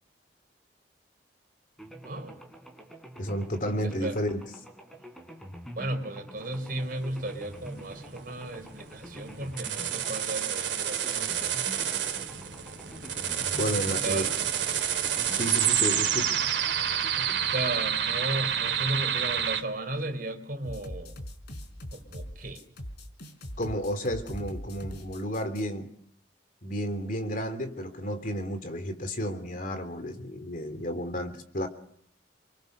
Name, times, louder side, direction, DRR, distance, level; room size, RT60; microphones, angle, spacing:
sound 1, 1.8-18.7, equal, ahead, 3.7 m, -46 dB
voice 1, 2.0-2.4 3.8-4.2 5.8-11.6 14.0-14.4 17.5-21.2 21.9-22.6, right 2 dB, 50° right, 7 dB, 4.3 m, -35 dB
voice 2, 3.2-4.5 13.5-14.3 15.3-16.3 23.6-25.9 26.6-31.7, equal, 50° left, 8 dB, 3.2 m, -32 dB
sound 2, 6.7-19.6, right 9 dB, 70° right, 2.5 m, -29 dB
sound 3, 20.6-25.6, equal, 65° left, 4.6 m, -41 dB
29.0 x 24.5 x 6.8 m, 0.65 s
head